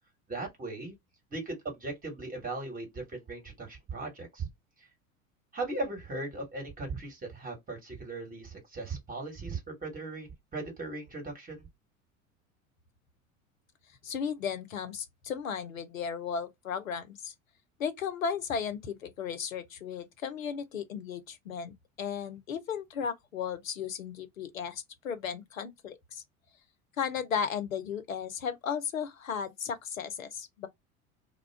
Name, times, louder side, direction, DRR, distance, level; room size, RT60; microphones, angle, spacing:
voice 1, 0.3-0.9 1.3-4.5 5.5-11.7, right 3 dB, 20° right, 1.4 m, -38 dB
voice 2, 14.0-17.3 17.8-26.2 27.0-30.7, left 7 dB, 75° left, 0.7 m, -35 dB
2.4 x 2.2 x 3.3 m
figure-of-eight pair, 75°, 40 cm